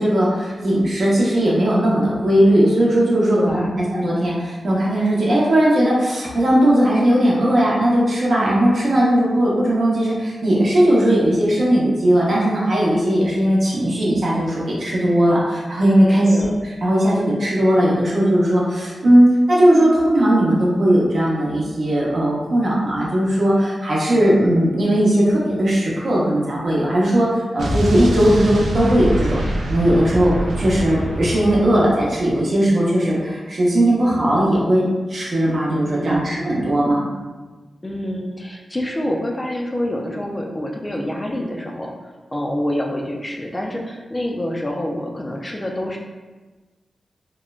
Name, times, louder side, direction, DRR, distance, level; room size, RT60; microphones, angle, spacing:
voice 1, 0.0-16.5 16.8-29.4 29.7-37.1, right 1 dB, 60° right, -5 dB, 0.7 m, -18 dB
voice 2, 3.4-3.7 16.1-16.5 35.9-36.4 37.8-46.0, left 1 dB, 20° left, 0 dB, 0.3 m, -27 dB
Explosion, 27.6-32.4, right 1 dB, 80° right, 0.4 m, -24 dB
3.0 x 2.0 x 2.3 m, 1.3 s
wide cardioid pair, 90°, 0 cm